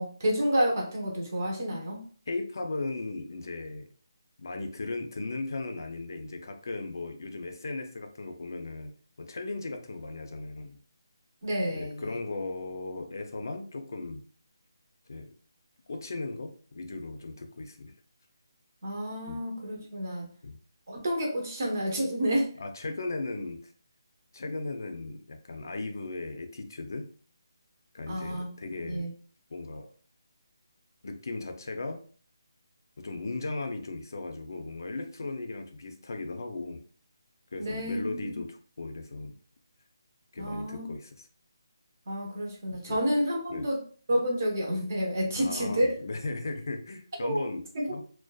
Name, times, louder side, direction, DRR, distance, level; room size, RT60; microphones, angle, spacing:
voice 1, 0.0-2.0 11.4-12.1 18.8-20.3 20.9-22.5 28.1-28.5 28.8-29.1 37.6-38.4 40.4-40.9 42.1-43.8 44.1-45.9 47.2-47.4 47.7-47.9, equal, 35° right, -1 dB, 0.8 m, -29 dB
voice 2, 2.3-3.9 4.4-10.8 11.7-14.2 15.1-15.3 15.9-17.9 19.3-19.4 20.4-20.6 22.6-23.7 24.3-27.1 27.9-29.0 29.5-29.9 31.0-32.0 33.0-36.8 37.5-39.4 40.3-41.3 42.9-43.0 43.5-43.7 45.4-47.6 47.9-48.0, left 3 dB, 50° left, 6 dB, 0.4 m, -37 dB
2.5 x 2.1 x 2.3 m, 0.43 s
hypercardioid pair, 175°, 2 cm